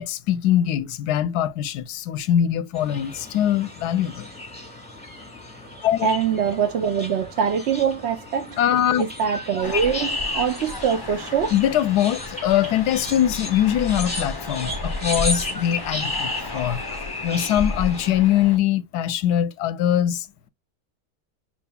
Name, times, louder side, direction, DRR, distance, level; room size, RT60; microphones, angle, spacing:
voice 1, 0.0-4.3 5.8-6.1 8.6-9.0 11.5-16.8 17.2-20.5, left 11 dB, 90° left, 1.2 m, -22 dB
sound 1, 2.7-18.1, left 2 dB, 5° left, 1.3 m, -34 dB
voice 2, 6.0-8.6 9.0-11.5, right 7 dB, 55° right, 0.8 m, -23 dB
sound 2, 9.6-18.6, left 3 dB, 30° left, 0.4 m, -33 dB
6.2 x 3.0 x 2.2 m
omnidirectional pair, 1.7 m